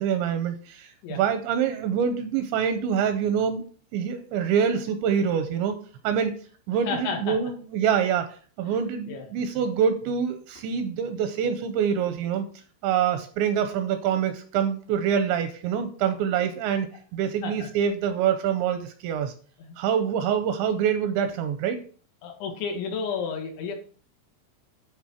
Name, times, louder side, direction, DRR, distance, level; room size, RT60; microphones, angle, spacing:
voice 1, 0.0-3.6 3.9-5.8 6.0-6.4 6.7-8.3 8.6-12.5 12.8-16.9 17.1-19.3 19.8-21.8, right 8 dB, 85° right, 9 dB, 2.7 m, -25 dB
voice 2, 6.9-7.4 8.7-8.8 9.1-9.3 17.4-17.7 19.6-19.8 22.2-23.7, left 5 dB, 75° left, 3 dB, 3.6 m, -32 dB
9.8 x 4.0 x 6.1 m, 0.43 s
omnidirectional pair, 5.6 m